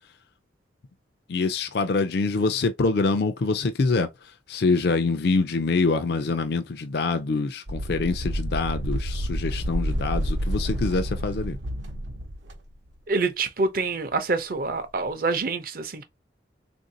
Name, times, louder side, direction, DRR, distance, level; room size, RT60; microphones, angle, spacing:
voice 1, 1.3-4.1 4.5-11.6, left 3 dB, 55° left, 0.4 m, -25 dB
sound 1, 7.7-12.6, equal, 80° right, 0.8 m, -29 dB
voice 2, 13.1-16.0, right 3 dB, 50° right, 0.6 m, -26 dB
3.6 x 2.6 x 2.6 m
head